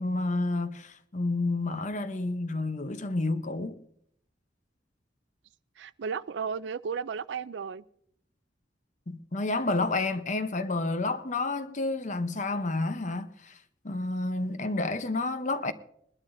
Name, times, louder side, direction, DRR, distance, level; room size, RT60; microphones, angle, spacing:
voice 1, 0.0-3.8 9.1-13.5 13.8-15.7, left 2 dB, 40° left, 0.9 m, -30 dB
voice 2, 5.8-7.8, right 6 dB, 70° right, 0.4 m, -34 dB
21.0 x 12.5 x 2.7 m
head